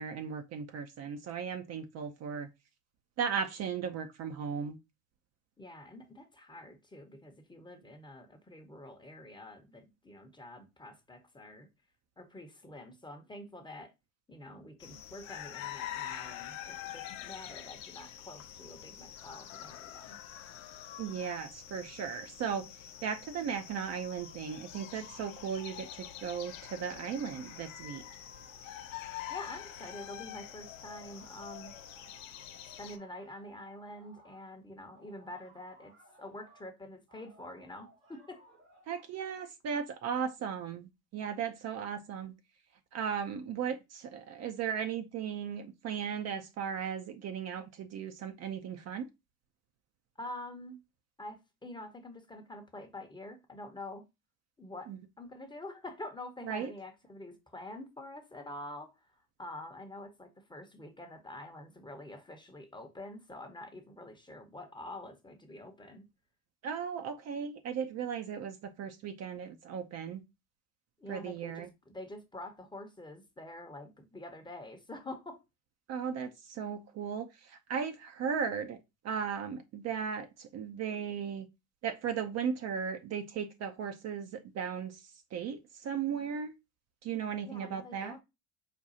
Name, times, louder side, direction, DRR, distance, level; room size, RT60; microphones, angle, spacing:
voice 1, 0.0-2.5 3.2-4.8 21.0-22.7 23.0-28.0 38.9-42.3 42.9-49.1 54.9-55.0 56.5-56.7 66.6-70.2 71.1-71.7 75.9-78.8 79.0-81.5 81.8-86.5 87.0-88.1, right 7 dB, 40° right, 0.6 m, -36 dB
voice 2, 5.6-11.7 12.2-13.9 14.3-20.2 29.3-31.8 32.8-35.9 36.2-38.4 50.2-50.8 51.2-54.1 54.6-66.1 71.0-75.4 87.5-88.2, left 1 dB, 10° left, 0.8 m, -47 dB
sound 1, 14.8-33.0, left 12 dB, 75° left, 0.5 m, -46 dB
sound 2, 23.6-25.3 25.6-34.5 34.9-36.7 37.1-39.4, equal, 90° right, 2.2 m, -60 dB
5.1 x 2.3 x 2.7 m
hypercardioid pair, 70°, 41 cm